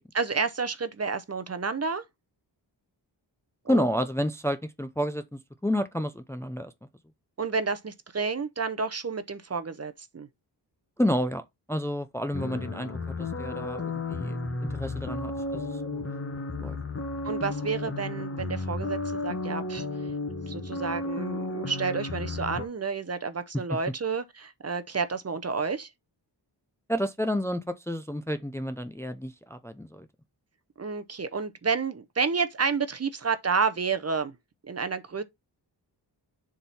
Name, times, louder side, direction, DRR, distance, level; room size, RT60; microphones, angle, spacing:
voice 1, 0.1-2.0 3.6-3.9 7.4-10.3 17.2-19.9 20.5-25.9 30.8-34.3 34.6-35.2, right 5 dB, 35° right, 0.8 m, -30 dB
voice 2, 3.7-6.7 11.0-11.4 11.7-16.0 16.6-16.8 26.9-30.1, equal, 5° left, 0.5 m, -30 dB
sound 1, 12.3-22.6, left 2 dB, 30° left, 1.4 m, -33 dB
7.1 x 3.7 x 4.1 m
wide cardioid pair, 135°, 43 cm